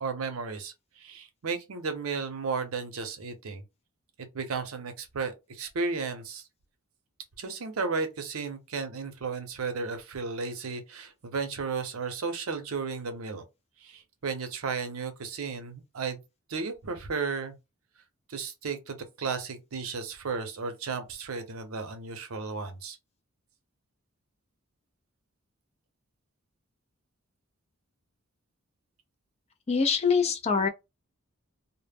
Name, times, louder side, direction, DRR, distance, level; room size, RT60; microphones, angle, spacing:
voice 1, 0.0-3.6 4.2-6.5 7.4-13.4 13.8-16.2 16.5-17.5 18.3-23.0, right 4 dB, 75° right, 0.6 m, -34 dB
voice 2, 29.7-30.7, left 5 dB, 30° left, 0.4 m, -24 dB
2.0 x 2.0 x 3.3 m
head